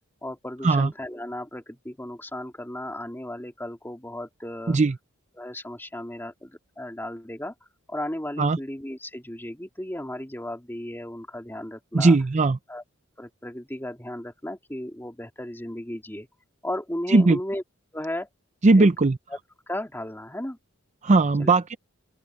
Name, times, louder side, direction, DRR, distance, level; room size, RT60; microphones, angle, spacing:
voice 1, 0.2-4.8 5.3-7.5 7.9-12.2 12.7-12.8 13.2-16.3 16.6-17.6 17.9-18.3 18.7-18.9 19.3-19.4 19.7-20.6 21.4-21.5, left 1 dB, 10° left, 2.6 m, -35 dB
voice 2, 11.9-12.6 17.1-17.4 18.6-19.1 21.0-21.8, right 3 dB, 35° right, 0.5 m, -18 dB
open air
head